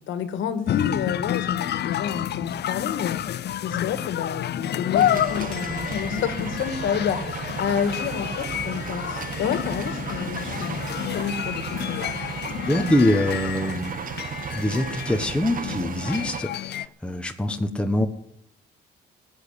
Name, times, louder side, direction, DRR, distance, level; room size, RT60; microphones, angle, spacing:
voice 1, 0.0-3.2 3.6-12.1, left 7 dB, 75° left, 10 dB, 1.9 m, -29 dB
sound 1, 0.7-16.9, left 11 dB, 55° left, 0.6 m, -29 dB
sound 2, 5.0-16.4, right 8 dB, 45° right, 0.7 m, -34 dB
voice 2, 12.7-14.0 14.5-18.1, left 1 dB, 5° left, 4 dB, 1.3 m, -24 dB
16.0 x 9.0 x 8.2 m, 0.75 s
cardioid pair, 90°, 20 cm